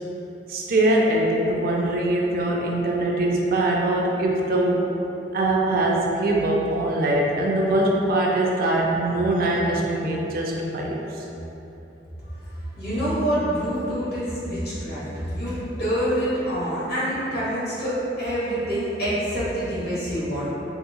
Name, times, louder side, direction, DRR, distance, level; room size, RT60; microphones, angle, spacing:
voice 1, 0.5-4.9 5.3-11.0, right 1 dB, 55° right, -2 dB, 0.4 m, -22 dB
voice 2, 12.3-20.5, equal, 60° left, -10 dB, 1.0 m, -26 dB
3.5 x 2.9 x 2.3 m, 3.0 s
head